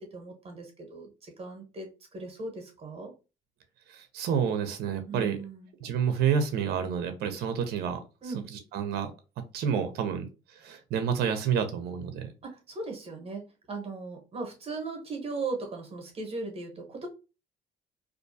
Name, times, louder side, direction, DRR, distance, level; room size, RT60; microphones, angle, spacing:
voice 1, 0.1-3.1 5.1-5.7 8.2-8.5 12.4-17.1, right 3 dB, 35° right, 3 dB, 0.9 m, -38 dB
voice 2, 3.9-5.4 5.8-8.0 8.3-9.1 9.5-10.3 10.6-12.3, right 7 dB, 70° right, 8 dB, 0.5 m, -29 dB
2.4 x 2.2 x 2.6 m, 0.31 s
cardioid pair, 110°, 17 cm